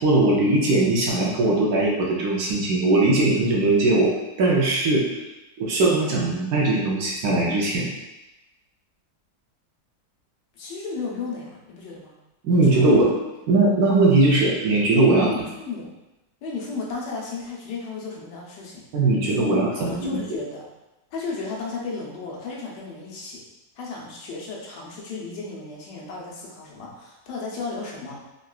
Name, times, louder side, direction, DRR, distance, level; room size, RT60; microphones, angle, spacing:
voice 1, 0.0-4.1 4.4-5.2 5.6-7.9 12.4-13.2 13.5-15.3 18.9-20.4, right 2 dB, 70° right, -3 dB, 1.0 m, -20 dB
voice 2, 10.5-12.2 12.7-12.9 15.2-15.9 16.4-18.8 19.2-20.7 21.1-23.4 23.8-28.3, left 4 dB, 85° left, -3 dB, 1.3 m, -34 dB
3.7 x 2.2 x 2.3 m, 0.99 s
omnidirectional pair, 1.8 m